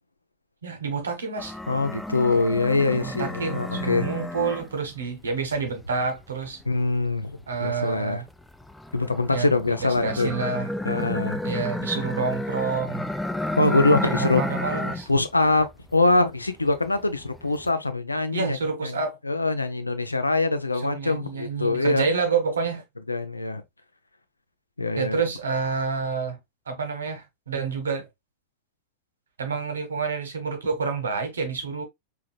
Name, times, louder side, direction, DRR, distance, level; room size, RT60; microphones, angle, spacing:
voice 1, 0.6-1.6 2.9-6.6 7.5-8.3 9.3-9.8 10.0-10.7 11.4-13.1 14.1-15.1 18.3-19.2 20.7-22.8 25.0-26.4 26.7-28.1 29.4-31.8, right 5 dB, 70° right, 1.2 m, -28 dB
sound 1, 1.4-5.0 5.5-7.7 8.3-15.2 15.5-16.3 16.7-17.7, left 1 dB, 5° left, 0.4 m, -32 dB
voice 2, 1.7-4.1 6.7-8.2 8.9-10.3 10.8-11.4 13.6-14.4 15.1-18.6 18.8-19.0 19.2-22.1 23.1-23.6 24.8-25.2, left 2 dB, 80° left, 0.6 m, -23 dB
4.7 x 3.4 x 2.2 m
figure-of-eight pair, 90°, 0 cm